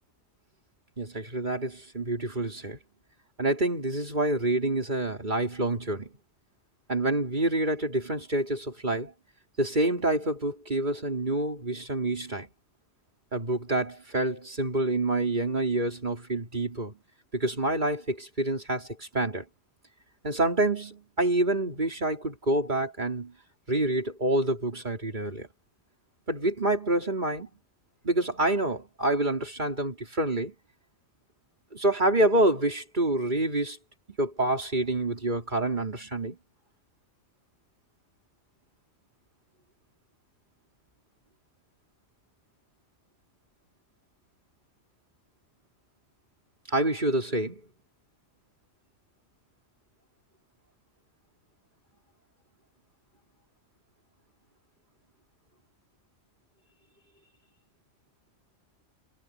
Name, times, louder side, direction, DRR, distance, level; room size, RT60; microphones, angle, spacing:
voice 1, 1.0-2.8 3.4-6.1 6.9-9.1 9.6-12.5 13.3-17.0 17.3-19.4 20.2-23.3 23.7-25.5 26.3-27.5 28.0-30.5 31.7-33.8 34.2-36.4 46.7-47.7, right 1 dB, 35° right, 4.0 m, -27 dB
omnidirectional pair, 1.4 m